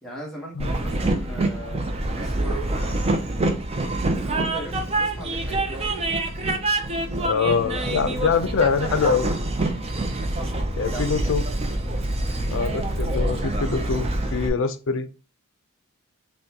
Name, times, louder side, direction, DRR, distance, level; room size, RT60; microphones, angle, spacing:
voice 1, 0.0-3.2 3.9-6.0 7.1-8.3 10.3-11.3, equal, ahead, -4 dB, 1.2 m, -39 dB
Train, 0.6-14.5, right 2 dB, 30° right, 0.5 m, -26 dB
voice 2, 7.2-9.3 10.8-11.4 12.5-14.0 14.3-15.1, left 5 dB, 65° left, 11 dB, 0.5 m, -24 dB
5.5 x 2.2 x 2.8 m, 0.35 s
head